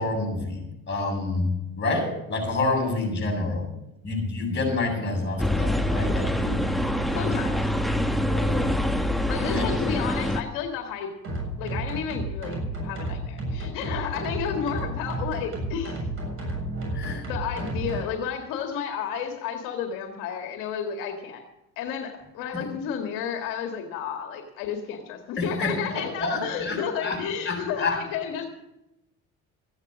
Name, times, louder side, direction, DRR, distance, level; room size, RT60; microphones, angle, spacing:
voice 1, 0.0-1.5 1.8-3.7 4.0-6.7 8.3-8.8 9.4-9.8 16.9-17.2 22.5-22.6 25.4-27.2 27.5-28.0, left 2 dB, 35° left, 2 dB, 7.2 m, -28 dB
sound 1, 5.4-10.4, equal, ahead, 1.3 m, -25 dB
voice 2, 7.1-7.7 9.3-11.1 11.6-16.1 17.3-21.4 21.8-28.5, left 7 dB, 85° left, 4 dB, 1.9 m, -32 dB
sound 2, 11.2-18.1, right 1 dB, 40° right, 7.2 m, -32 dB
15.0 x 9.8 x 6.3 m, 0.91 s
supercardioid pair, 85°, 32 cm